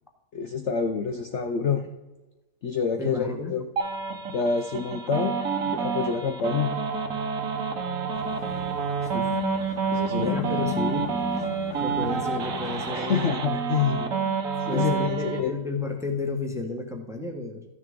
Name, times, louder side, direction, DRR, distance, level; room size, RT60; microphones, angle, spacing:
voice 1, 0.3-1.8 2.6-3.6 4.3-6.7 9.9-10.6 12.9-14.3 14.6-15.5, left 6 dB, 60° left, 5 dB, 0.8 m, -27 dB
voice 2, 3.0-3.5 9.0-9.4 10.2-11.1 11.4-11.5 11.8-13.5 14.7-17.7, left 3 dB, ahead, 4 dB, 1.0 m, -32 dB
sound 1, 3.8-15.4, right 6 dB, 60° right, 1.4 m, -29 dB
sound 2, 8.1-13.2, left 5 dB, 85° left, 1.8 m, -35 dB
13.5 x 6.5 x 3.7 m, 1.0 s
omnidirectional pair, 1.7 m